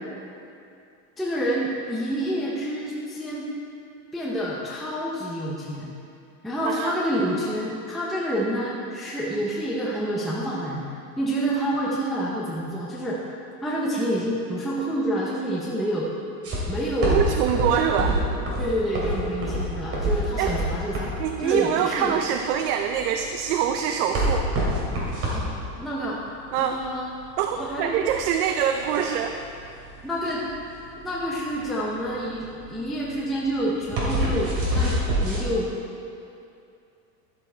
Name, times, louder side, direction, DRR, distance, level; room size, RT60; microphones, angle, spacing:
voice 1, 1.2-3.5 4.1-5.9 6.4-10.8 11.2-13.2 13.6-16.1 16.7-17.2 18.6-21.1 21.4-22.2 25.3-25.5 25.8-26.2 26.6-27.1 27.5-28.0 30.0-30.5 31.0-34.9 35.2-35.7, right 1 dB, ahead, -6 dB, 0.6 m, -28 dB
sound 1, 16.4-35.4, right 1 dB, 30° right, 2.7 m, -27 dB
voice 2, 17.1-18.2 20.4-20.5 21.2-24.5 26.5-26.8 27.4-29.4, right 9 dB, 70° right, 5 dB, 0.7 m, -24 dB
12.0 x 7.0 x 4.4 m, 2.6 s
supercardioid pair, 155°, 48 cm